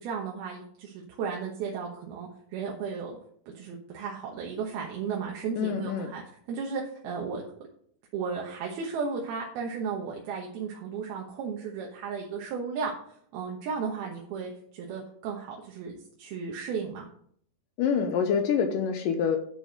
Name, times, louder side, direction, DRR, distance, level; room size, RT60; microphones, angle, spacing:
voice 1, 0.0-3.2 3.5-6.2 6.5-7.4 8.1-12.9 13.3-17.1, right 5 dB, 75° right, -1 dB, 3.0 m, -34 dB
voice 2, 5.6-6.1 17.8-19.4, left 7 dB, 75° left, 6 dB, 2.1 m, -26 dB
9.7 x 5.4 x 6.5 m, 0.62 s
omnidirectional pair, 4.6 m